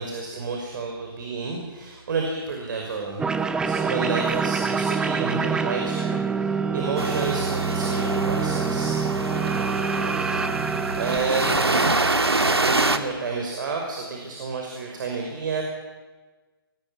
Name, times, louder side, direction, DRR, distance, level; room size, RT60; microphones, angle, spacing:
voice 1, 0.0-3.2 3.6-9.0 10.9-11.8 12.6-15.6, right 4 dB, 55° right, 1 dB, 5.7 m, -30 dB
sound 1, 3.2-12.2, right 5 dB, 5° right, 0.8 m, -26 dB
sound 2, 7.0-13.0, right 2 dB, 90° right, 2.2 m, -25 dB
23.0 x 19.0 x 10.0 m, 1.3 s
figure-of-eight pair, 135°, 13 cm